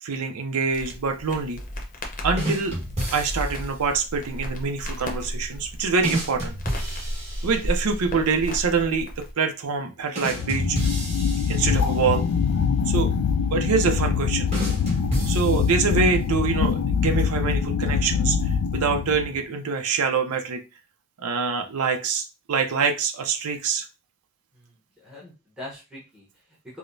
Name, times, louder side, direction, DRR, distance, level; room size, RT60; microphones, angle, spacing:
voice 1, 0.0-1.6 2.2-2.7 3.1-6.5 7.4-9.1 9.4-10.8 11.5-12.3 12.9-13.1 13.5-14.5 15.3-18.4 18.7-20.6 21.2-23.9, right 5 dB, 80° right, 5 dB, 0.5 m, -25 dB
Crackle, 0.7-9.3, equal, 35° left, 0.7 m, -33 dB
sound 1, 2.4-3.8 6.0-8.0 10.1-12.3 14.5-16.1, right 1 dB, 30° right, 1.4 m, -31 dB
sound 2, 10.3-19.4, left 6 dB, 80° left, 0.3 m, -24 dB
voice 2, 24.5-26.8, left 1 dB, 5° right, -7 dB, 0.8 m, -43 dB
4.8 x 2.1 x 2.6 m, 0.30 s
head